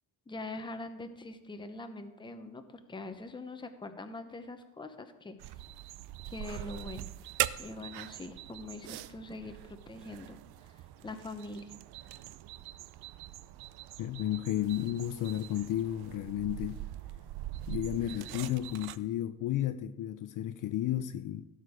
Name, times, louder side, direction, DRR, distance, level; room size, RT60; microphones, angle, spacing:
voice 1, 0.3-5.4 6.3-7.1 7.6-11.8, left 2 dB, 10° left, 0.9 m, -43 dB
sound 1, 5.4-19.0, right 14 dB, 70° right, 0.6 m, -42 dB
voice 2, 14.0-16.8 17.7-21.5, left 12 dB, 50° left, 0.5 m, -33 dB
16.5 x 6.6 x 5.1 m
cardioid pair, 155°, 39 cm